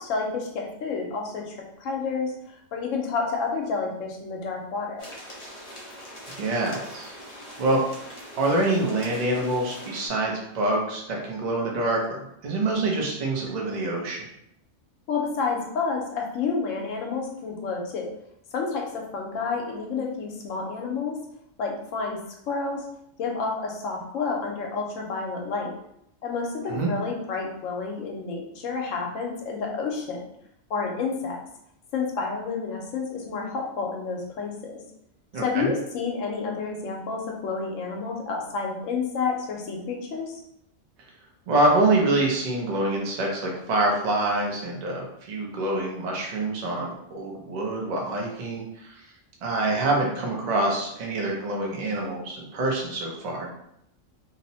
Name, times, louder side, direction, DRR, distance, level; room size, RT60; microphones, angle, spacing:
voice 1, 0.0-2.3 2.7-5.1 15.1-18.1 18.5-21.2 21.6-22.2 22.5-22.8 23.2-25.7 26.2-30.2 30.7-31.4 31.9-34.8 35.4-40.4, left 4 dB, 75° left, 0 dB, 1.0 m, -29 dB
sound 1, 5.0-10.1, equal, 40° left, 0.4 m, -42 dB
voice 2, 6.3-7.1 7.6-8.1 8.4-14.2 26.7-26.9 35.3-35.7 41.5-48.9 49.4-53.5, right 2 dB, 50° right, -1 dB, 0.5 m, -26 dB
2.8 x 2.0 x 2.7 m, 0.76 s
omnidirectional pair, 1.4 m